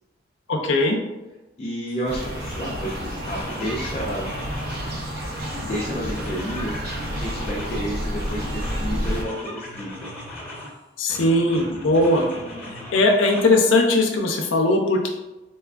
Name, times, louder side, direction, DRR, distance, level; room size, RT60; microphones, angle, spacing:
voice 1, 0.5-1.0 11.0-12.3 12.9-15.1, left 2 dB, 85° left, 3 dB, 0.5 m, -19 dB
voice 2, 1.6-4.3 5.6-10.1 12.0-12.4, equal, 30° left, -4 dB, 0.3 m, -31 dB
sound 1, 1.9-2.0 2.4-5.0 5.3-7.9 8.2-10.7 11.1-13.4, left 1 dB, 10° left, 0.8 m, -37 dB
sound 2, 2.1-9.2, equal, 50° right, 0.5 m, -30 dB
4.2 x 2.3 x 2.3 m, 1.1 s
head